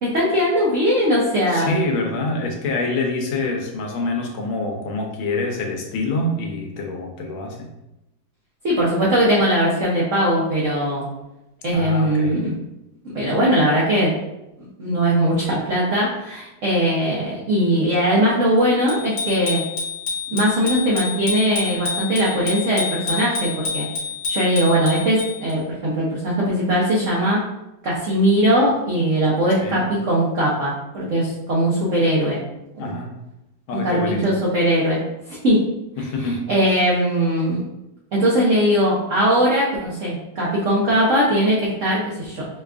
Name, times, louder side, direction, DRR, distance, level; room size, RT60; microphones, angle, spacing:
voice 1, 0.0-1.8 8.6-11.1 11.6-12.5 13.0-14.1 14.8-19.6 20.3-23.9 24.3-27.4 27.8-32.4 32.8-32.9 33.8-35.0 35.3-35.6 36.2-37.6 38.1-42.5, equal, 90° right, -5 dB, 0.6 m, -20 dB
voice 2, 1.5-7.7 11.7-12.4 29.6-29.8 32.8-33.1 33.7-34.2 36.0-36.5, left 2 dB, 80° left, 1 dB, 1.4 m, -26 dB
Bicycle bell, 18.9-25.5, left 5 dB, 60° left, 1.4 m, -28 dB
5.1 x 2.3 x 2.4 m, 0.93 s
omnidirectional pair, 2.3 m